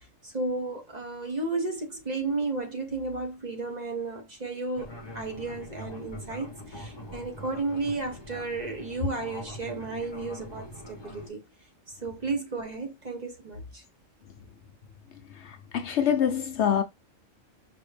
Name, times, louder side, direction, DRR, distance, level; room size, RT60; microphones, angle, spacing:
voice 1, 0.2-11.4 12.0-13.8, right 3 dB, 35° right, 1.0 m, -33 dB
Fixed-wing aircraft airplane, 4.7-11.3, left 1 dB, 25° left, 0.8 m, -43 dB
voice 2, 15.4-16.8, left 8 dB, 65° left, 0.8 m, -25 dB
5.1 x 2.7 x 3.2 m
omnidirectional pair, 1.4 m